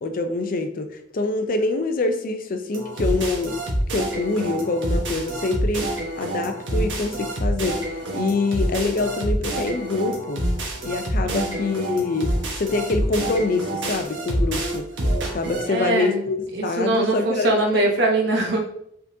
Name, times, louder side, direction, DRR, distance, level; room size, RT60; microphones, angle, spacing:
voice 1, 0.0-3.6 3.9-10.4 10.8-12.3 12.6-14.8 15.3-17.9, left 3 dB, 50° left, 7 dB, 0.5 m, -25 dB
sound 1, 2.7-15.7, right 1 dB, 90° right, 1.2 m, -27 dB
voice 2, 11.2-11.7 15.7-16.2 16.5-18.6, right 2 dB, 65° right, 2 dB, 0.9 m, -22 dB
4.9 x 3.7 x 2.7 m, 0.73 s
head